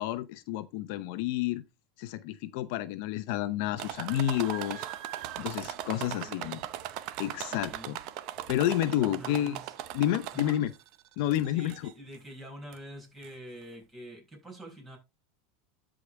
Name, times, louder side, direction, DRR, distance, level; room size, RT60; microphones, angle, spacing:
voice 1, 0.0-1.6 2.0-4.9 5.4-6.6 7.2-8.0 8.5-9.6 9.9-10.7 11.2-11.9, left 13 dB, 60° left, 0.7 m, -30 dB
sound 1, 3.8-10.8 11.3-11.9 12.7-12.8 13.2-13.3, right 13 dB, 50° right, 0.8 m, -39 dB
voice 2, 5.8-6.6 7.5-7.9 8.9-9.7 10.3-10.7 11.5-15.0, equal, 10° right, 5.1 m, -46 dB
13.0 x 5.0 x 3.4 m
supercardioid pair, 145°, 0 cm